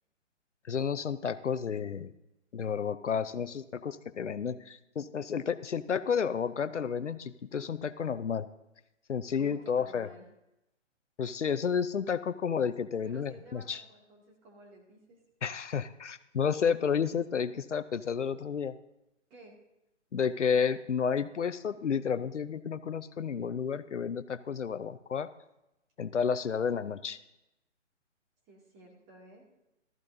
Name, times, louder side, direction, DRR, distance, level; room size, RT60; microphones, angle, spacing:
voice 1, 0.7-2.1 2.5-8.5 9.1-10.1 11.2-13.8 15.4-18.7 20.1-25.3 26.0-27.2, left 7 dB, 70° left, 13 dB, 0.6 m, -31 dB
voice 2, 9.4-10.2 13.0-15.2 19.3-19.5 28.5-29.4, right 1 dB, 20° right, -1 dB, 2.2 m, -53 dB
15.0 x 13.5 x 2.7 m, 0.90 s
figure-of-eight pair, 135°, 37 cm